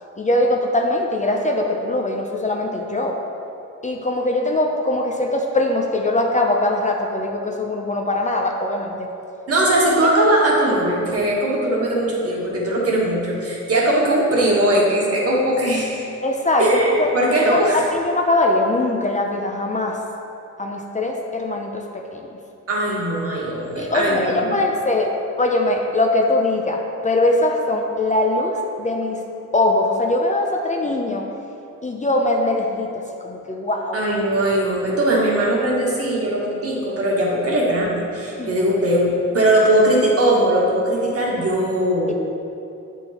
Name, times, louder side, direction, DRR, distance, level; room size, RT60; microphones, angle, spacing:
voice 1, 0.2-3.2 3.8-9.1 16.2-17.1 17.5-20.0 20.6-22.3 23.8-25.1 25.4-29.2 29.5-31.3 31.8-34.0 38.4-38.5, left 2 dB, 25° left, 1 dB, 0.6 m, -21 dB
voice 2, 9.5-16.1 16.6-17.8 22.7-24.6 33.9-42.1, right 1 dB, 50° right, -4 dB, 1.7 m, -19 dB
8.7 x 4.5 x 4.3 m, 2.8 s
cardioid pair, 110°, 30 cm